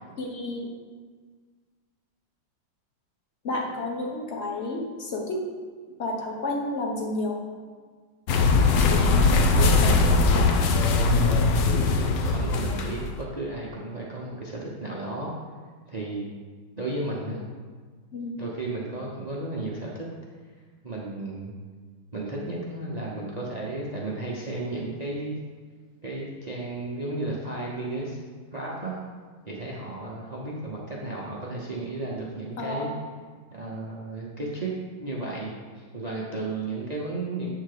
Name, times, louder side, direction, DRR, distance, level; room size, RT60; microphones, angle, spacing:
voice 1, 0.2-0.7 3.4-5.4 6.0-7.4 9.5-10.0 18.1-18.4 32.6-33.0, left 2 dB, 40° left, 0 dB, 1.2 m, -31 dB
sound 1, 8.3-13.2, left 3 dB, 70° left, 1.2 m, -20 dB
voice 2, 9.3-9.6 12.0-15.3 15.9-16.3 16.8-17.5 18.4-20.1 20.8-21.5 22.1-25.4 26.0-28.2 28.5-29.0 29.5-32.9 33.5-34.7 35.0-37.5, right 2 dB, 45° right, -3 dB, 0.5 m, -33 dB
8.7 x 3.8 x 6.6 m, 1.5 s
omnidirectional pair, 2.2 m